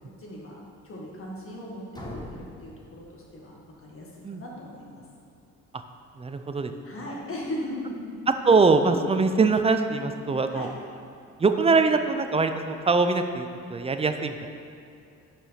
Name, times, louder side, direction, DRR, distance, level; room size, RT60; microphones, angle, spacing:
voice 1, 0.2-0.6 0.8-5.0 6.8-8.2 8.9-9.0 10.5-10.7, left 1 dB, 45° left, -3 dB, 1.7 m, -38 dB
sound 1, 1.9-3.8, left 1 dB, 15° left, 1.2 m, -42 dB
voice 2, 6.2-6.7 8.4-10.7 11.4-14.5, right 4 dB, 20° right, 8 dB, 0.4 m, -23 dB
5.3 x 5.0 x 5.6 m, 2.5 s
cardioid pair, 90°, 30 cm